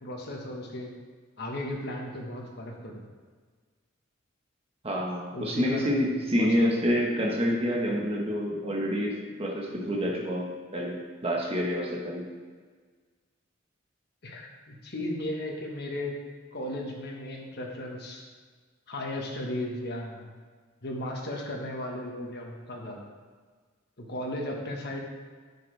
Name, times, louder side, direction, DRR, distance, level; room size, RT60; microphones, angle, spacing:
voice 1, 0.0-0.9 1.4-3.0 5.3-6.8 14.2-16.1 16.5-18.2 18.9-20.3 20.8-23.1 24.0-25.0, left 1 dB, 55° left, -1 dB, 1.3 m, -36 dB
voice 2, 4.8-9.1 9.4-12.2, equal, 30° right, -2 dB, 1.3 m, -27 dB
8.2 x 7.0 x 3.4 m, 1.5 s
head